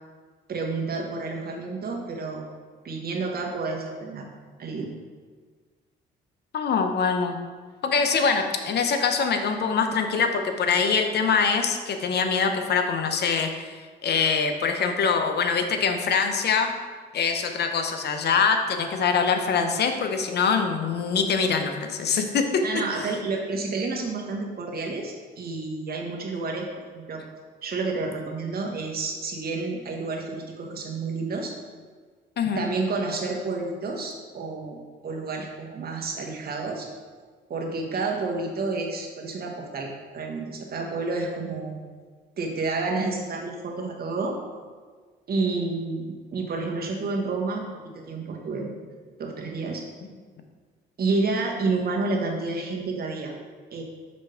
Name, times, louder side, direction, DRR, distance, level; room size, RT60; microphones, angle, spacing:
voice 1, 0.5-2.5 2.8-4.2 4.6-4.9 22.6-27.3 27.6-31.5 32.5-36.9 37.5-41.8 42.4-44.4 45.3-47.7 47.9-48.7 49.2-49.8 51.0-53.3 53.7-53.8, right 3 dB, 50° right, 0 dB, 1.1 m, -30 dB
voice 2, 6.5-7.4 7.8-16.7 17.1-22.6 32.4-32.7, left 5 dB, 55° left, 5 dB, 0.7 m, -24 dB
5.2 x 3.5 x 5.6 m, 1.6 s
cardioid pair, 90°, 20 cm